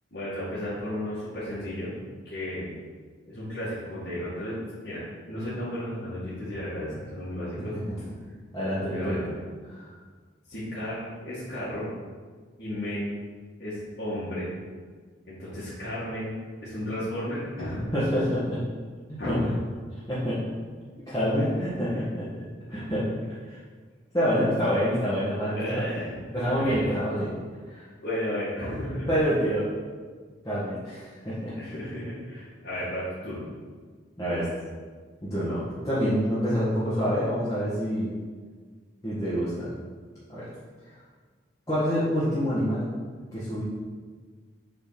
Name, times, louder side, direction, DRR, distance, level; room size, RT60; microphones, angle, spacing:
voice 1, 0.1-1.9 2.2-2.8 3.2-4.6 4.8-7.7 8.9-9.3 10.5-11.9 12.6-13.1 13.6-14.5 15.2-16.3 16.6-17.8 19.2-19.6 21.5-21.6 21.9-22.0 22.7-22.9 25.5-26.2 26.5-26.7 28.0-29.1 31.6-33.4, left 1 dB, 55° left, -11 dB, 2.2 m, -33 dB
voice 2, 8.5-9.2 9.7-9.9 17.9-18.6 19.1-19.4 20.1-20.5 21.1-22.3 22.7-23.1 23.4-23.6 24.1-25.9 26.3-27.3 27.7-27.9 29.1-29.7 30.4-31.5 34.2-34.5 35.2-38.1 39.0-39.7 40.3-40.5 41.7-42.9 43.3-43.6, equal, 15° left, -12 dB, 1.8 m, -27 dB
7.4 x 4.4 x 5.9 m, 1.5 s
head